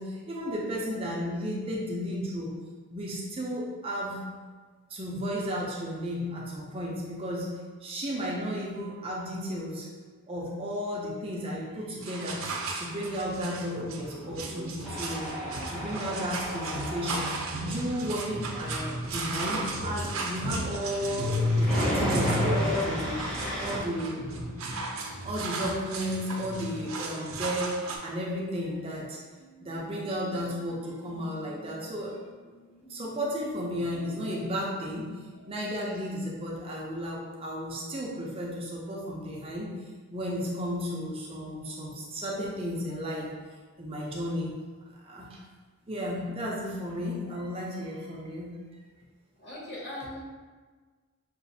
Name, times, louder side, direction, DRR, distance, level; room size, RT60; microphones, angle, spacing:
voice 1, 0.0-2.5 2.9-4.2 4.9-7.5 7.8-9.9 10.3-12.4 12.7-15.3 15.7-17.3 17.6-21.3 21.6-23.3 23.6-24.5 25.2-29.2 29.6-32.1 32.9-35.1 35.5-39.7 40.1-43.3 43.8-44.5 45.0-45.4 45.9-48.5, equal, 25° right, -4 dB, 0.5 m, -33 dB
sound 1, 12.0-28.0, right 1 dB, 80° right, 0.6 m, -33 dB
Tools, 14.8-23.8, equal, 5° left, 0.8 m, -34 dB
sound 2, 23.3-28.8 29.4-34.4 35.3-35.6, right 1 dB, 75° left, 1.4 m, -53 dB
voice 2, 49.4-50.2, left 1 dB, 50° left, -8 dB, 1.2 m, -39 dB
5.8 x 2.4 x 2.7 m, 1.4 s
head